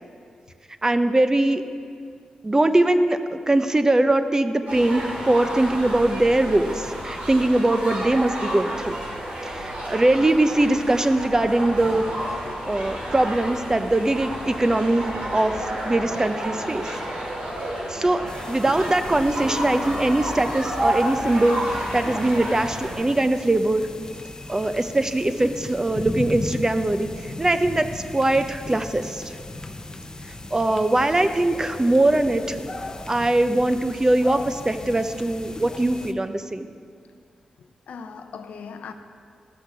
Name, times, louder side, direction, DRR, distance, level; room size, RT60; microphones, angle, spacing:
voice 1, 0.8-1.6 2.4-8.9 9.4-12.0 12.7-15.5 15.8-16.9 17.9-18.2 18.5-21.6 21.9-23.8 24.5-29.3 30.5-32.6 33.1-36.7, right 2 dB, 25° right, 0.7 m, -21 dB
sound 1, 4.7-22.9, right 1 dB, 70° right, 2.8 m, -30 dB
sound 2, 18.3-36.1, left 2 dB, 30° left, 0.8 m, -37 dB
voice 2, 37.6-38.9, left 5 dB, 80° left, 0.6 m, -39 dB
13.5 x 6.5 x 6.0 m
cardioid pair, 50°, 2 cm